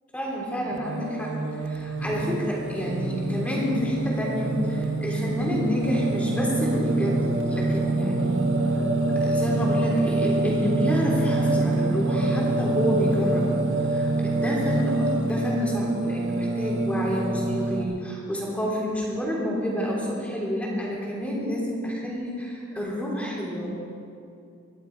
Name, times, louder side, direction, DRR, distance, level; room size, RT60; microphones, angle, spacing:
voice 1, 0.1-1.4 1.6-8.5 9.1-13.5 13.8-23.7, equal, 5° left, -4 dB, 3.4 m, -29 dB
Singing, 0.7-17.8, right 2 dB, 75° right, 1.3 m, -25 dB
23.0 x 11.5 x 4.7 m, 2.5 s
head